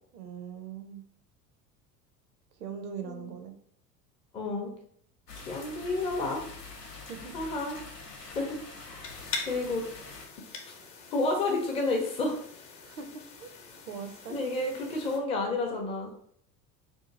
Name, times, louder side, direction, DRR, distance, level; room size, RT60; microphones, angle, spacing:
voice 1, 0.1-1.0 2.6-3.5 7.1-7.3 12.8-13.5 13.9-14.4, right 6 dB, 70° right, 6 dB, 0.6 m, -41 dB
voice 2, 4.3-4.7 5.4-6.4 7.3-7.7 8.3-8.6 8.9-9.1 9.5-9.8 11.1-12.4 14.3-16.1, left 2 dB, 15° left, 1 dB, 0.4 m, -30 dB
sound 1, 5.3-10.3, left 3 dB, 90° left, 0.6 m, -45 dB
sound 2, 9.0-15.2, left 4 dB, 50° left, 0.8 m, -43 dB
2.7 x 2.5 x 2.5 m, 0.63 s
figure-of-eight pair, 75°, 47 cm